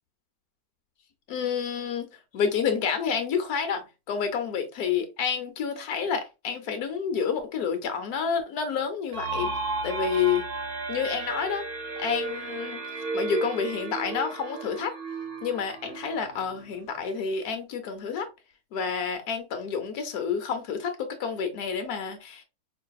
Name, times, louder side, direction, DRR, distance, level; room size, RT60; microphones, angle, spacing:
voice 1, 1.3-2.1 2.3-9.5 9.8-10.5 10.9-11.6 12.0-12.8 13.1-14.9 15.4-18.3 18.7-22.4, left 6 dB, 70° left, 1.2 m, -29 dB
sound 1, 9.1-16.7, right 3 dB, 45° right, 0.8 m, -34 dB
4.8 x 2.6 x 2.3 m
omnidirectional pair, 1.7 m